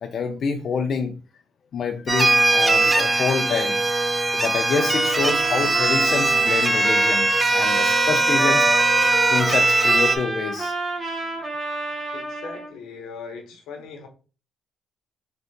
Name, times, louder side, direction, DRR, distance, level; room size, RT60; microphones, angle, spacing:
voice 1, 0.0-1.1 1.7-3.8 4.3-10.7, left 5 dB, 55° left, 0.5 m, -27 dB
sound 1, 2.1-10.2, right 2 dB, 20° right, 0.4 m, -20 dB
Trumpet, 4.7-12.7, right 3 dB, 40° right, 1.7 m, -29 dB
voice 2, 12.1-14.1, left 4 dB, 85° left, 1.0 m, -39 dB
3.9 x 2.4 x 3.6 m
cardioid pair, 90°, 0 cm